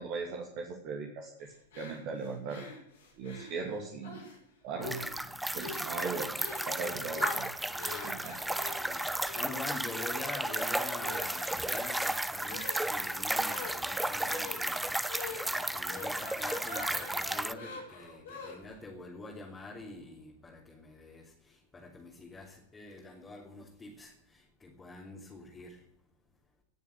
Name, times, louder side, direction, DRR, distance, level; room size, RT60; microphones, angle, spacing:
voice 1, 0.0-2.7 3.2-4.3 4.6-5.0 5.5-6.4 6.7-7.4 8.0-8.3, right 4 dB, 40° right, 2.6 m, -38 dB
sound 1, 1.7-4.4 4.8-5.3 5.6-5.9 6.3-6.7 7.1-18.8, left 4 dB, 65° left, 5.3 m, -45 dB
sound 2, 4.8-17.5, right 1 dB, 5° right, 0.6 m, -34 dB
voice 2, 6.8-7.3 7.7-26.0, left 2 dB, 15° left, 3.1 m, -46 dB
18.5 x 7.2 x 8.4 m
figure-of-eight pair, 90°, 0 cm